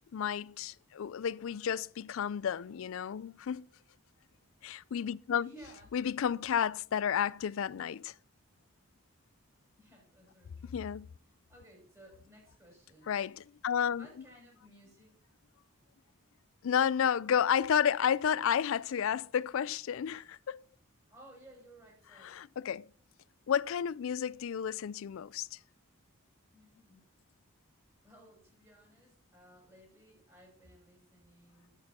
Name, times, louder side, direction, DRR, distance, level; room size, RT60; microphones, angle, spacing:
voice 1, 0.1-3.7 4.6-5.5 5.9-8.1 10.7-11.1 13.1-14.1 16.6-20.6 22.2-22.8 23.5-25.6, left 8 dB, 65° left, 0.3 m, -31 dB
voice 2, 5.4-6.0 9.8-10.8 11.2-13.2 13.9-15.1 21.1-22.4 26.5-27.1 28.0-31.7, right 1 dB, 15° right, 6.1 m, -57 dB
10.5 x 8.8 x 4.2 m
head